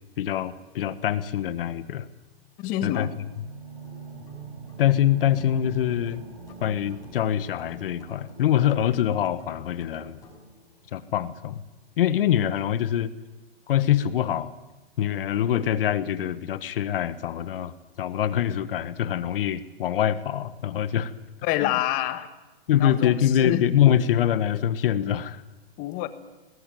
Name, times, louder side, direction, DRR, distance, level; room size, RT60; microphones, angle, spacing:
voice 1, 0.2-2.1 2.8-3.1 4.8-6.2 6.6-10.2 10.9-11.6 12.0-13.1 13.7-14.5 15.0-21.1 21.6-21.7 22.7-25.4, left 10 dB, 60° left, 14 dB, 1.5 m, -24 dB
voice 2, 2.6-3.1 21.4-22.3 22.8-23.7 25.8-26.1, left 13 dB, 25° left, 11 dB, 1.5 m, -27 dB
sound 1, 3.2-13.2, right 4 dB, 55° right, 7.1 m, -46 dB
sound 2, 3.8-10.5, equal, 10° left, 6.6 m, -52 dB
24.0 x 19.5 x 9.3 m, 1.1 s
hypercardioid pair, 150°, 32 cm